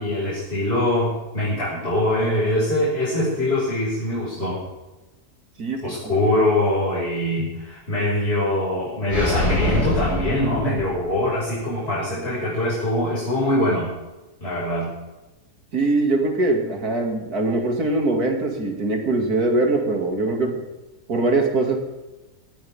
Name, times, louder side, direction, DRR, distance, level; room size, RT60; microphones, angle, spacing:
voice 1, 0.0-4.6 5.8-13.9 14.4-14.9, left 1 dB, 40° left, -9 dB, 6.0 m, -23 dB
voice 2, 5.6-6.1 12.1-12.3 15.7-20.6 21.1-21.8, right 2 dB, 70° right, 2 dB, 3.0 m, -22 dB
sound 1, 9.1-11.3, left 1 dB, 10° left, 5.0 m, -24 dB
20.0 x 13.5 x 3.7 m, 1.1 s
omnidirectional pair, 1.7 m